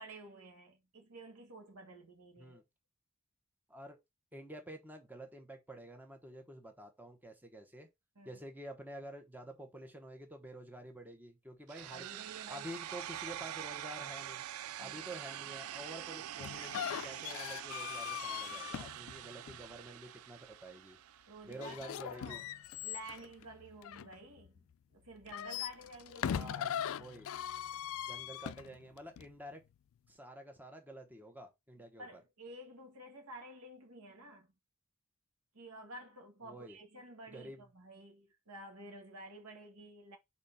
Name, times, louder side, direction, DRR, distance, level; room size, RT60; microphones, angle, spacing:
voice 1, 0.0-2.6 8.1-8.4 11.9-12.7 14.8-15.2 21.3-22.5 22.8-26.5 32.0-34.5 35.5-40.2, right 1 dB, 90° right, 1.7 m, -51 dB
voice 2, 4.3-7.9 8.2-12.1 12.5-14.4 14.8-21.0 21.4-22.4 26.3-27.3 28.1-29.6 30.1-32.2 36.4-36.8 37.3-37.6, right 1 dB, 10° right, 1.0 m, -49 dB
sound 1, 11.7-21.7, right 12 dB, 70° right, 0.3 m, -45 dB
sound 2, 16.4-19.7 21.5-24.6 25.1-29.3, left 9 dB, 65° left, 0.3 m, -41 dB
4.2 x 4.1 x 5.5 m
head